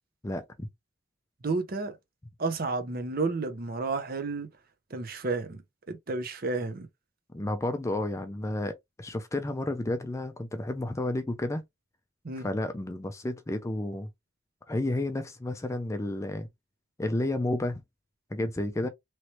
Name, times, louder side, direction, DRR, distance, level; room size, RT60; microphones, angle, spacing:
voice 1, 0.2-0.7 7.3-11.6 12.4-14.1 14.7-16.5 17.0-17.8 18.3-18.9, left 1 dB, 15° left, 0.3 m, -31 dB
voice 2, 1.4-2.0 2.4-4.5 4.9-5.6 5.9-6.9 12.2-12.5, right 3 dB, 45° right, 0.6 m, -31 dB
3.0 x 3.0 x 2.8 m
head